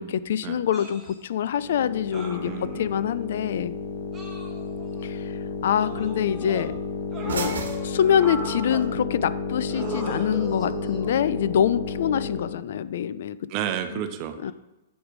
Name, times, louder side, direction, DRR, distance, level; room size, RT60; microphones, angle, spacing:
voice 1, 0.0-3.7 5.0-5.3 5.6-6.7 7.2-13.4 13.9-14.0 14.4-14.5, left 9 dB, 65° left, 16 dB, 0.4 m, -25 dB
sound 1, 0.7-1.1 2.1-3.0 4.1-5.0 5.8-6.7 7.1-8.9 9.7-11.2 12.3-12.5, right 3 dB, 15° right, 1.9 m, -38 dB
sound 2, 0.8-8.8, right 5 dB, 80° right, 1.2 m, -42 dB
sound 3, 1.4-12.6, left 4 dB, 45° left, 1.3 m, -32 dB
voice 2, 2.4-2.9 13.5-14.5, right 10 dB, 40° right, 8 dB, 0.9 m, -31 dB
8.0 x 4.8 x 5.0 m, 1.0 s
hypercardioid pair, 120°, 0 cm